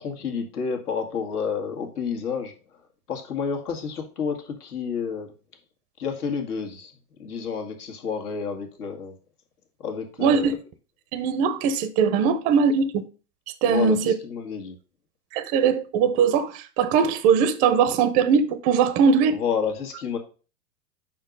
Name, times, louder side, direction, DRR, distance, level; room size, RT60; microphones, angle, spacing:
voice 1, 0.0-2.5 3.1-5.3 6.0-6.9 7.2-9.1 9.8-10.6 13.7-14.8 19.3-20.2, left 6 dB, 85° left, 2.0 m, -30 dB
voice 2, 10.2-10.5 11.1-13.0 13.6-14.1 15.3-19.4, right 6 dB, 20° right, 0.4 m, -20 dB
5.6 x 4.4 x 5.3 m
hypercardioid pair, 135°, 44 cm